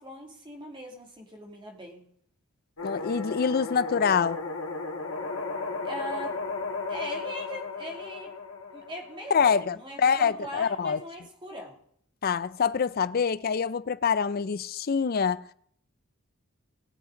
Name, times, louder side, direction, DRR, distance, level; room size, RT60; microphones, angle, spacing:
voice 1, 0.0-2.0 5.8-6.4 6.9-8.3 8.7-11.8, equal, 25° right, 2.6 m, -40 dB
sound 1, 2.8-9.7, left 4 dB, 85° left, 1.9 m, -35 dB
voice 2, 2.8-4.4 9.3-11.0 12.2-15.5, left 6 dB, 45° left, 0.4 m, -25 dB
20.0 x 7.7 x 3.9 m
head